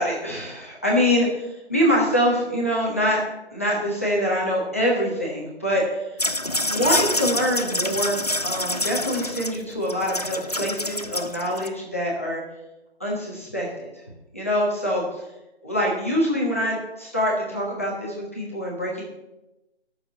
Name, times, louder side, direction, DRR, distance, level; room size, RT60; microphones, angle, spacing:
voice 1, 0.0-3.2 3.5-6.2 6.6-12.4 13.0-14.0 14.3-15.3 15.6-19.0, equal, 15° left, -5 dB, 1.2 m, -24 dB
sound 1, 6.2-11.7, left 1 dB, 40° left, 0.6 m, -27 dB
12.0 x 6.8 x 7.1 m, 0.97 s
figure-of-eight pair, 180°, 32 cm